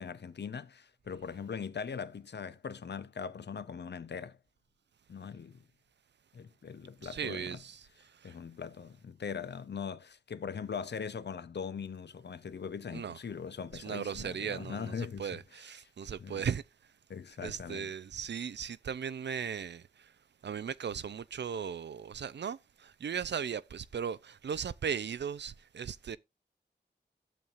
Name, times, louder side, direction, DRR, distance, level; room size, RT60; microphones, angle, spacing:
voice 1, 0.0-4.4 5.1-5.6 6.3-7.6 8.2-15.3 16.2-16.4 17.1-17.9, left 6 dB, 80° left, 0.7 m, -41 dB
voice 2, 7.0-8.4 12.9-13.2 13.7-16.6 17.4-20.1 20.4-26.2, right 7 dB, 85° right, 0.5 m, -37 dB
12.5 x 7.2 x 2.5 m
wide cardioid pair, 60°, 18 cm